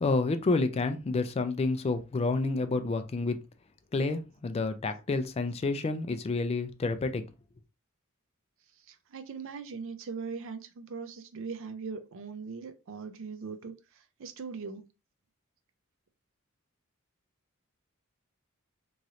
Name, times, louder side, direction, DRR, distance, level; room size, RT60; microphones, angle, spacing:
voice 1, 0.0-3.4 3.9-7.2, left 3 dB, 30° left, 0.3 m, -29 dB
voice 2, 8.9-14.8, right 5 dB, 65° right, 0.5 m, -40 dB
3.1 x 2.5 x 2.8 m
head